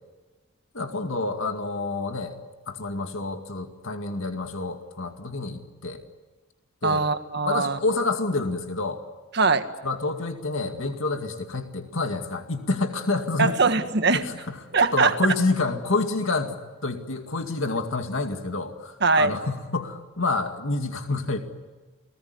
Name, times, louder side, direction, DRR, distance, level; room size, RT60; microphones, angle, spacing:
voice 1, 0.7-2.3 2.7-6.0 6.8-7.0 7.5-9.0 9.8-13.6 14.1-14.4 14.8-21.4, left 3 dB, 80° left, 5 dB, 2.2 m, -28 dB
voice 2, 6.8-7.8 9.3-9.7 13.4-14.2 14.7-15.2 19.0-19.4, right 4 dB, 55° right, 8 dB, 1.7 m, -21 dB
29.5 x 19.5 x 9.6 m, 1.3 s
head